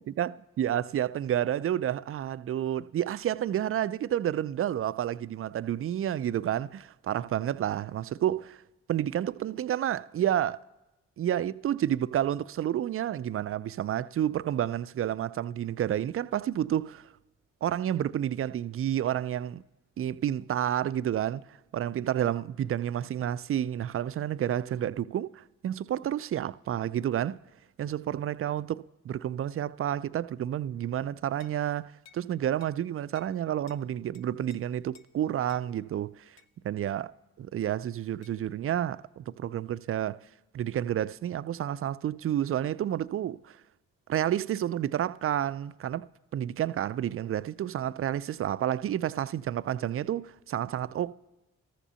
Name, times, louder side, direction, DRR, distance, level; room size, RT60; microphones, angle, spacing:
voice 1, 0.0-0.3 0.6-8.6 8.9-10.6 11.2-17.1 17.6-19.6 20.0-21.4 21.7-27.4 27.8-36.2 36.6-37.1 37.4-40.2 40.5-43.6 44.1-51.1, right 11 dB, 40° right, 0.4 m, -30 dB
sound 1, 31.4-31.6 32.0-32.3 32.6-32.8 33.1-33.4 33.7-33.8 34.1-34.6 34.9-35.1 35.5-35.7 36.4-36.5 38.2-38.4, left 8 dB, 50° left, 0.8 m, -57 dB
16.5 x 7.3 x 6.9 m
supercardioid pair, 45°, 34 cm